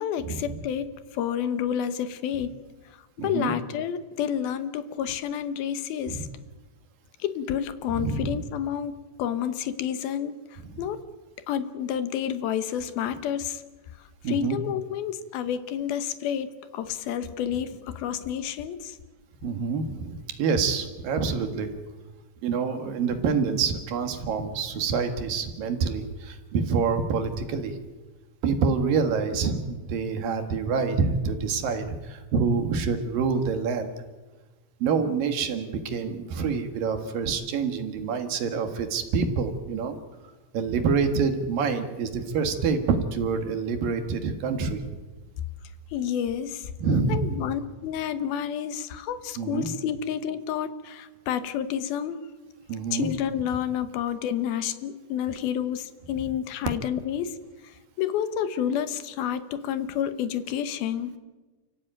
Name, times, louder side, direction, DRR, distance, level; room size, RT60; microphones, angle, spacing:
voice 1, 0.0-2.5 3.2-6.3 7.2-10.4 10.8-11.0 11.5-13.6 14.3-16.5 16.7-19.0 45.9-46.7 47.1-52.3 52.9-57.4 57.6-61.1, left 9 dB, 80° left, 12 dB, 3.0 m, -29 dB
voice 2, 3.2-3.5 6.1-6.2 7.9-8.4 10.7-10.8 14.2-14.6 19.4-21.7 22.4-27.8 28.4-33.9 34.8-40.0 40.5-44.8 46.8-47.4 49.4-49.7 52.7-53.1, right 5 dB, 65° right, 7 dB, 3.4 m, -26 dB
30.0 x 15.5 x 9.1 m, 1.2 s
omnidirectional pair, 4.4 m